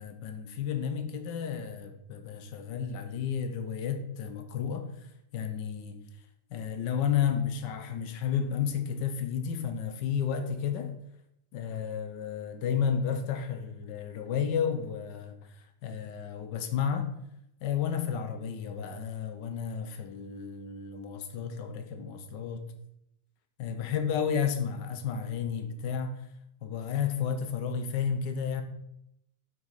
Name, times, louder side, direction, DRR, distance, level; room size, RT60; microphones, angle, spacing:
voice 1, 0.0-4.9 5.3-6.0 6.5-10.9 11.5-17.1 17.6-22.7 23.6-26.2 26.6-28.6, left 7 dB, 80° left, 7 dB, 1.6 m, -32 dB
8.0 x 6.2 x 5.6 m, 0.79 s
omnidirectional pair, 1.9 m